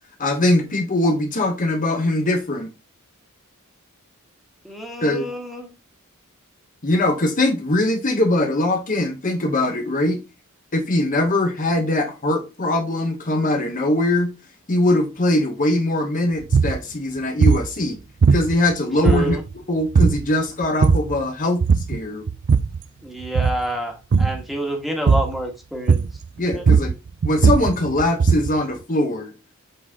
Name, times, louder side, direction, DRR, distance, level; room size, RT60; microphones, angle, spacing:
voice 1, 0.2-2.7 5.0-5.3 6.8-10.2 10.7-14.3 14.7-18.0 18.3-19.4 19.7-21.6 21.9-22.2 26.4-26.9 27.2-29.3, left 1 dB, 40° left, 1.1 m, -21 dB
voice 2, 4.6-5.7 19.0-19.4 23.0-26.0 26.5-26.7, right 1 dB, ahead, 1.6 m, -28 dB
sound 1, 16.4-16.8 17.4-17.7 18.2-18.7 19.0-19.5 19.9-20.3 20.6-21.2 21.6-22.0 22.3-22.8 23.2-23.6 24.1-24.4 25.1-25.4 25.9-26.2 26.5-28.6, right 5 dB, 55° right, 0.4 m, -18 dB
7.8 x 4.1 x 3.6 m
head